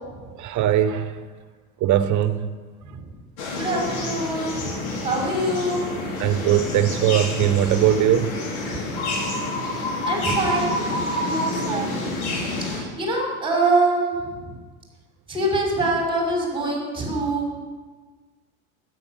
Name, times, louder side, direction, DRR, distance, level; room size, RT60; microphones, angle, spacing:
voice 1, 0.4-1.1 1.8-2.5 6.2-8.3, right 11 dB, 45° right, 1.1 m, -20 dB
sound 1, 3.4-12.8, left 2 dB, 60° left, 4.9 m, -28 dB
voice 2, 3.5-4.7 5.0-5.9 10.0-12.3 12.6-14.5 15.3-17.6, right 2 dB, 10° right, 5.5 m, -25 dB
13.0 x 9.3 x 7.5 m
hypercardioid pair, 95°, 42 cm